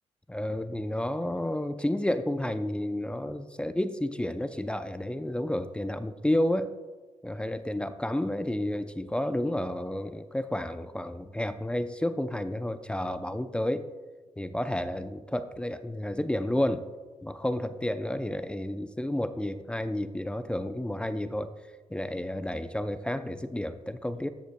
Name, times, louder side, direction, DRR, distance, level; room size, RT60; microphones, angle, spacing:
voice 1, 0.3-6.7 7.2-13.9 14.4-16.8 17.2-21.5 21.9-24.3, left 1 dB, 10° left, 11 dB, 0.4 m, -31 dB
12.0 x 7.7 x 2.2 m, 1.3 s
cardioid pair, 80°, 12 cm